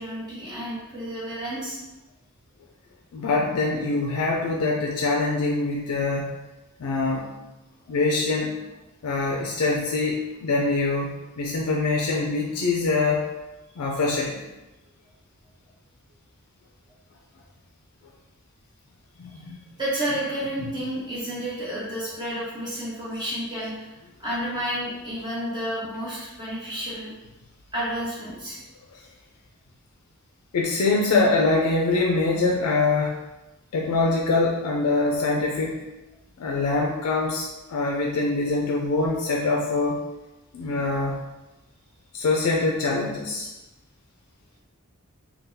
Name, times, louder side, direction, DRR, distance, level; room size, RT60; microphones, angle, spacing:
voice 1, 0.0-1.8 19.8-23.9 24.2-27.1 27.7-28.6, right 1 dB, 20° right, -9 dB, 1.2 m, -31 dB
voice 2, 3.1-6.3 6.8-7.3 7.9-8.5 9.0-13.2 13.8-14.4 19.2-19.6 20.6-20.7 28.9-29.0 30.5-33.2 33.7-35.8 36.4-40.0 40.5-41.2 42.1-43.5, left 3 dB, 70° left, -2 dB, 0.4 m, -24 dB
3.8 x 2.2 x 2.7 m, 1.0 s
head